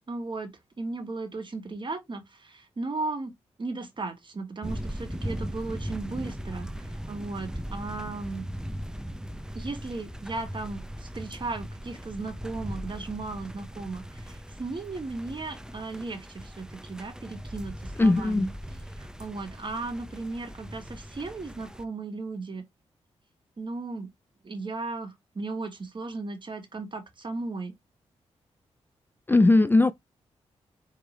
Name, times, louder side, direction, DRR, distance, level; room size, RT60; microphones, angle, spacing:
voice 1, 0.1-0.5 0.8-8.5 9.5-18.5 19.0-22.6 23.6-24.1 24.4-27.7, right 3 dB, 40° right, 1.6 m, -36 dB
sound 1, 4.6-21.8, equal, 5° right, 0.7 m, -39 dB
voice 2, 18.0-18.5 29.3-29.9, left 2 dB, 15° left, 0.4 m, -19 dB
4.8 x 3.5 x 3.1 m
cardioid pair, 55°, 12 cm